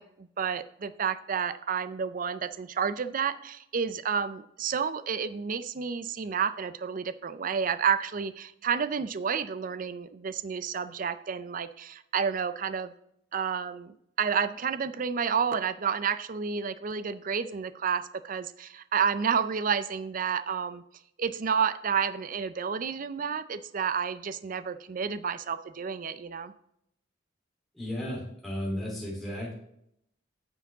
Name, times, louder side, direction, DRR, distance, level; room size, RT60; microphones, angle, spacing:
voice 1, 0.0-12.9 13.3-20.8 21.2-26.5, right 6 dB, 45° right, 13 dB, 0.5 m, -30 dB
voice 2, 27.7-29.5, equal, ahead, -5 dB, 3.2 m, -34 dB
9.2 x 7.1 x 3.5 m, 0.75 s
head